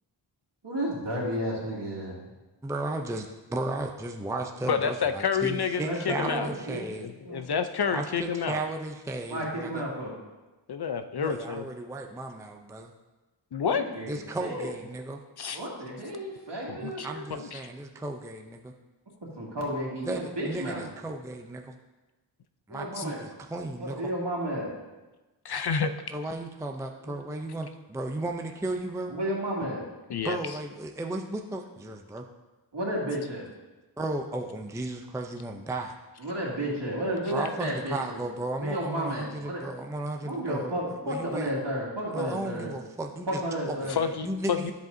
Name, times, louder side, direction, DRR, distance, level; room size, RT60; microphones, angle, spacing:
voice 1, 0.6-2.2 5.8-7.4 9.3-10.1 13.6-14.7 15.5-17.3 19.4-20.8 22.7-23.2 23.8-24.7 29.1-29.9 32.7-33.5 36.2-38.2 38.6-39.7 40.2-42.7 43.3-44.0, equal, 60° right, -4 dB, 2.3 m, -32 dB
voice 2, 2.6-7.1 7.9-9.8 11.1-12.9 14.1-15.2 16.8-18.7 20.0-21.7 22.7-24.0 26.1-29.1 30.2-32.3 34.0-36.0 37.3-41.5 42.1-43.4 43.7-43.9 44.2-44.7, right 2 dB, 5° right, 3 dB, 0.5 m, -34 dB
voice 3, 4.7-6.5 7.0-8.6 10.7-11.6 13.5-13.8 15.4-15.6 16.7-17.7 23.0-23.1 25.4-26.1 30.1-30.4 43.9-44.7, left 6 dB, 55° left, 9 dB, 0.6 m, -29 dB
10.5 x 7.5 x 2.7 m, 1.1 s
wide cardioid pair, 75°, 46 cm